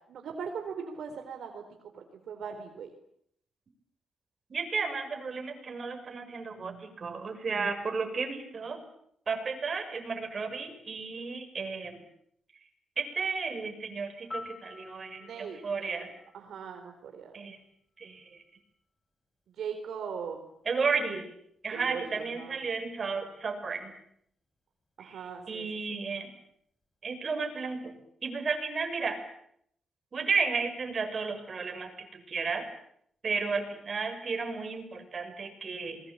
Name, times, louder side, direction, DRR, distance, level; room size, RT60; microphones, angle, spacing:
voice 1, 0.1-1.6 1.9-2.9 15.2-17.4 19.6-20.4 21.7-22.6 25.0-26.0, right 6 dB, 75° right, 5 dB, 4.0 m, -40 dB
voice 2, 4.5-8.8 9.3-12.0 13.0-16.1 17.3-17.6 18.0-18.4 20.6-21.3 21.6-23.9 25.0-25.2 25.5-26.3 27.0-27.9 28.2-29.2 30.1-32.7 33.2-36.0, right 4 dB, 45° right, 5 dB, 6.8 m, -33 dB
Piano, 14.3-17.2 25.4-25.6, left 2 dB, 20° left, 5.6 m, -47 dB
27.5 x 22.0 x 8.8 m, 0.72 s
cardioid pair, 95°, 0 cm